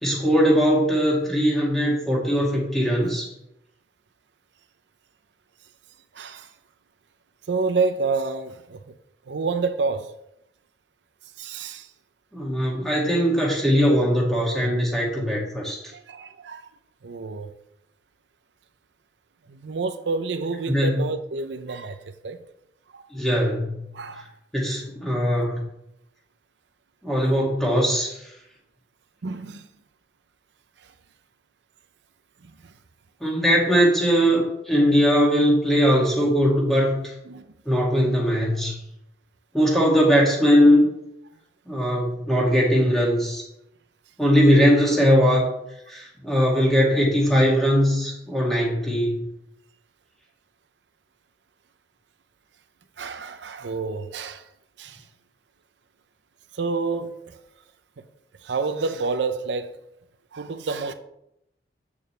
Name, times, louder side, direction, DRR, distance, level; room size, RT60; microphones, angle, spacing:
voice 1, 0.0-3.3 12.3-15.8 20.7-21.1 23.1-23.8 24.5-25.6 27.0-28.3 33.2-37.1 37.7-38.8 39.5-40.9 41.7-43.4 44.2-45.4 45.9-49.2, equal, ahead, 2.1 m, -20 dB
voice 2, 6.1-6.5 7.5-8.8 9.2-10.1 11.4-11.9 15.6-16.7 17.0-17.5 19.5-22.4 22.9-23.1 23.9-24.3 29.2-29.7 30.8-30.9 32.4-32.7 34.9-35.0 37.3-37.5 53.0-54.5 54.8-55.1 56.5-57.4 58.4-59.8 60.3-60.9, right 4 dB, 85° right, 0.6 m, -29 dB
8.5 x 6.7 x 3.3 m
head